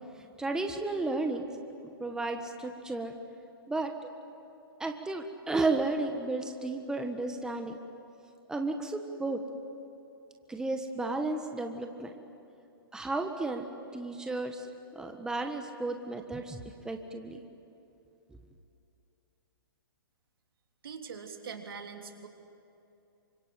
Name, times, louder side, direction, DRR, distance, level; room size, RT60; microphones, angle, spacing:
voice 1, 0.4-1.5 1.8-3.2 3.7-3.9 4.8-7.8 8.5-9.4 10.5-12.1 12.9-13.6 13.9-14.7 14.9-16.6 16.8-17.4, right 2 dB, 5° right, 4 dB, 1.5 m, -33 dB
voice 2, 20.8-22.3, right 5 dB, 70° right, 4 dB, 3.4 m, -42 dB
27.5 x 25.5 x 7.8 m, 2.8 s
hypercardioid pair, 130°, 12 cm